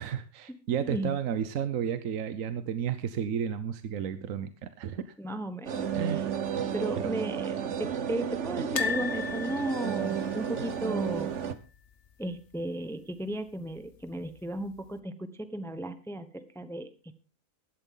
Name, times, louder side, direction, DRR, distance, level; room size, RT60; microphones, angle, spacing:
voice 1, 0.0-5.1 5.9-6.3 7.0-7.1, right 8 dB, 80° right, 12 dB, 1.3 m, -32 dB
voice 2, 0.7-1.2 5.2-6.2 6.7-11.4 12.2-17.1, right 1 dB, ahead, 10 dB, 0.9 m, -35 dB
sound 1, 5.7-11.5, right 8 dB, 65° right, 1.3 m, -32 dB
sound 2, 8.8-11.8 12.1-12.3 12.5-12.6 13.9-14.4 14.9-15.0, left 8 dB, 60° left, 1.3 m, -36 dB
16.5 x 12.0 x 3.8 m, 0.32 s
omnidirectional pair, 1.4 m